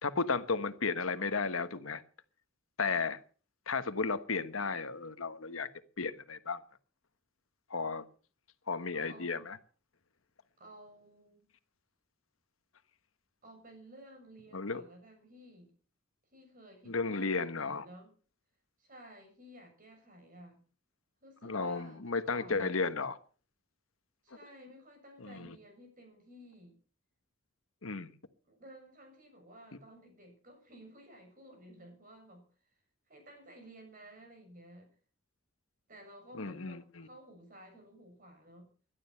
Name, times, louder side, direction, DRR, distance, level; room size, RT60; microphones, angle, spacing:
voice 1, 0.0-2.0 2.8-3.2 3.7-5.7 6.0-6.6 7.7-8.1 8.7-9.6 14.5-14.8 16.9-17.9 21.4-23.1 25.2-25.6 27.8-28.1 36.4-37.1, left 4 dB, 90° left, 11 dB, 1.3 m, -34 dB
voice 2, 8.9-9.5 10.6-11.5 13.4-15.7 16.3-18.1 18.8-20.6 21.2-22.0 22.2-22.9 24.2-26.8 28.4-32.4 33.1-34.9 35.9-38.7, right 1 dB, 40° right, 4 dB, 7.2 m, -54 dB
17.5 x 12.0 x 5.7 m, 0.39 s
head